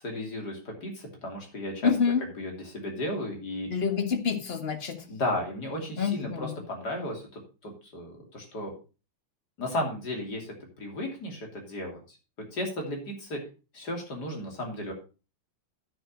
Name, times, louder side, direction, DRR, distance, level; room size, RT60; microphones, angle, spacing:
voice 1, 0.0-1.9 2.2-3.7 5.1-8.7 9.6-12.2 12.5-13.4 13.7-14.9, left 1 dB, 50° left, 1 dB, 3.4 m, -34 dB
voice 2, 1.8-2.2 3.7-5.0 6.0-6.6, left 6 dB, 30° left, 6 dB, 1.4 m, -27 dB
9.9 x 6.7 x 5.5 m, 0.33 s
omnidirectional pair, 2.4 m